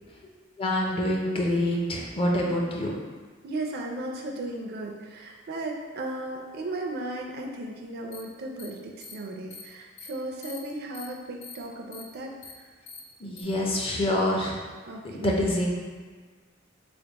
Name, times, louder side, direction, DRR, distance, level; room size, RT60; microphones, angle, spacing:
voice 1, 0.6-2.9 13.2-14.6 15.0-15.7, left 1 dB, 30° left, -1 dB, 0.5 m, -26 dB
voice 2, 3.4-12.3 14.9-15.4, right 2 dB, 55° right, 1 dB, 0.4 m, -35 dB
sound 1, 8.1-8.2 8.6-8.7 9.0-9.1 9.5-9.6 10.0-10.1 10.4-10.6 10.9-11.1 11.4-11.6 11.9-12.0 12.4-12.5 12.9-13.0 13.4-13.5, left 5 dB, 85° left, 0.7 m, -43 dB
3.3 x 2.0 x 3.9 m, 1.5 s
head